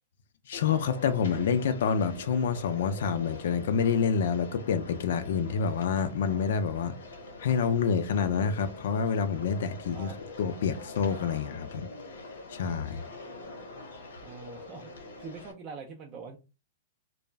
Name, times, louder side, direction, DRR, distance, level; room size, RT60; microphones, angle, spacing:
sound 1, 0.5-15.5, left 2 dB, 90° left, 0.8 m, -45 dB
voice 1, 0.5-6.9 7.4-11.9 12.5-13.0, left 6 dB, 70° left, 0.3 m, -28 dB
voice 2, 14.2-16.4, right 5 dB, 30° right, 0.4 m, -44 dB
2.2 x 2.0 x 3.3 m
hypercardioid pair, 155°, 0 cm